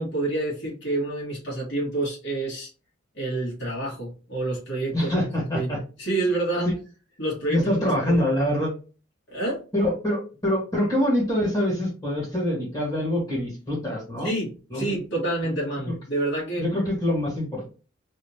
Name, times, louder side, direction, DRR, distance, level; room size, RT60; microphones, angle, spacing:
voice 1, 0.0-2.7 3.1-4.9 5.5-5.7 6.0-6.7 7.2-7.7 8.1-8.2 9.3-9.6 14.2-16.7, right 2 dB, 60° left, -4 dB, 1.6 m, -28 dB
voice 2, 4.9-5.8 7.5-8.7 9.7-14.3 14.7-15.0 15.9-16.0 16.6-17.7, left 1 dB, 20° left, -4 dB, 1.5 m, -25 dB
3.4 x 2.7 x 2.7 m, 0.35 s
head